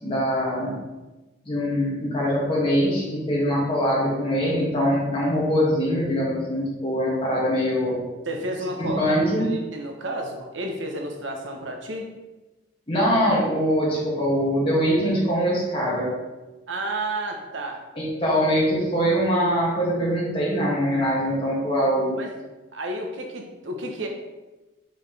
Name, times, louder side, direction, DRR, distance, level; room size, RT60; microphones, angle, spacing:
voice 1, 0.0-0.7 1.5-8.0 8.8-9.5 12.9-16.1 18.0-22.2, equal, 30° left, -5 dB, 2.1 m, -23 dB
voice 2, 8.2-9.2 9.5-12.1 16.7-17.8 22.2-22.3 22.7-24.1, right 1 dB, 85° right, 2 dB, 1.0 m, -31 dB
6.4 x 5.7 x 3.3 m, 1.1 s
head